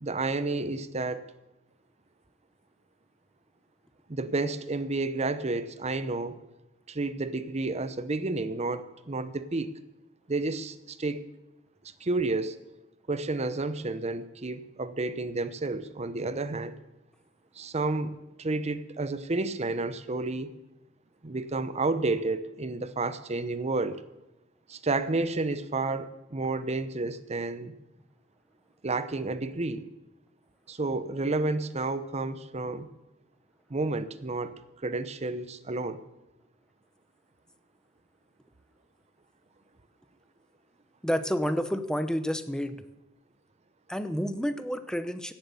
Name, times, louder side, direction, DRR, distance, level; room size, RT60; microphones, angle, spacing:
voice 1, 0.0-1.2 4.1-6.4 6.9-9.7 10.3-11.3 12.0-12.6 13.1-16.8 17.6-20.5 21.2-24.0 24.7-27.7 28.8-29.9 30.7-32.9 33.7-34.5 34.8-36.0, right 3 dB, 35° right, 12 dB, 0.8 m, -31 dB
voice 2, 41.0-42.8 43.9-45.3, equal, 5° left, 11 dB, 0.7 m, -29 dB
17.0 x 7.9 x 6.9 m, 0.98 s
head